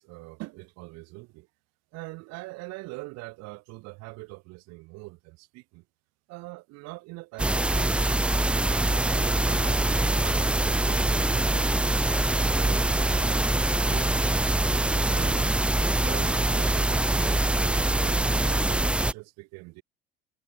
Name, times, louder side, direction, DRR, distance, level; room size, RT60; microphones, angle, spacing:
voice 1, 0.0-1.5 1.9-5.8 6.3-7.9 8.5-12.8 13.1-14.4 15.1-15.6 15.9-19.8, right 24 dB, 60° right, 3.5 m, -43 dB
sound 1, 7.4-19.1, right 2 dB, 5° right, 0.4 m, -24 dB
figure-of-eight pair, 65°, 30 cm